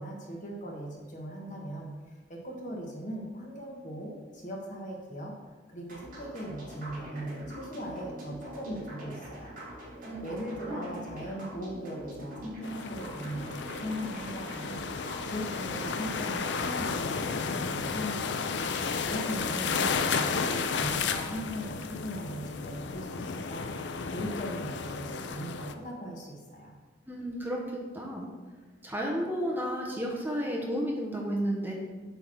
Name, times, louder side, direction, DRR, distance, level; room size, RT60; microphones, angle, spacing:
voice 1, 0.0-5.3 5.7-9.5 10.2-14.8 15.2-18.4 19.0-23.7 24.1-26.7, equal, 45° left, -1 dB, 1.5 m, -39 dB
sound 1, 5.9-16.4, equal, 50° right, 2.2 m, -44 dB
voice 2, 10.0-11.0 27.1-27.6 27.9-28.3 28.8-31.7, equal, 10° right, -1 dB, 1.0 m, -32 dB
sound 2, 12.6-25.7, left 5 dB, 70° left, 0.5 m, -33 dB
8.1 x 3.5 x 6.2 m, 1.3 s
head